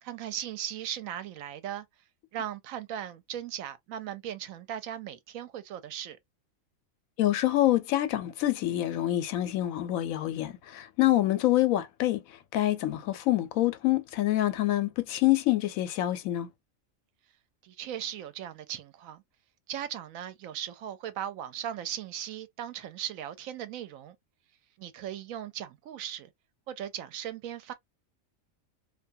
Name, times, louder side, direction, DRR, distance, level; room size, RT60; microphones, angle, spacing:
voice 1, 0.0-1.9 2.3-6.2 17.6-19.2 19.7-24.2 24.8-26.3 26.7-27.7, right 10 dB, 80° right, 1.0 m, -38 dB
voice 2, 7.2-16.5, left 15 dB, 85° left, 1.0 m, -26 dB
2.5 x 2.2 x 2.5 m
omnidirectional pair, 1.4 m